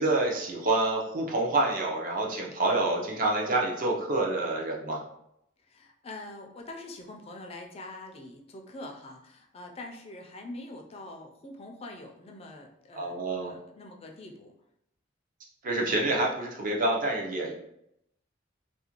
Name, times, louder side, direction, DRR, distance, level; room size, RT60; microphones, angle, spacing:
voice 1, 0.0-5.0 13.0-13.5 15.6-17.5, right 2 dB, 45° right, -1 dB, 0.5 m, -27 dB
voice 2, 5.7-13.2 13.4-14.5, left 2 dB, 30° left, 2 dB, 0.3 m, -44 dB
2.4 x 2.1 x 2.9 m, 0.78 s
head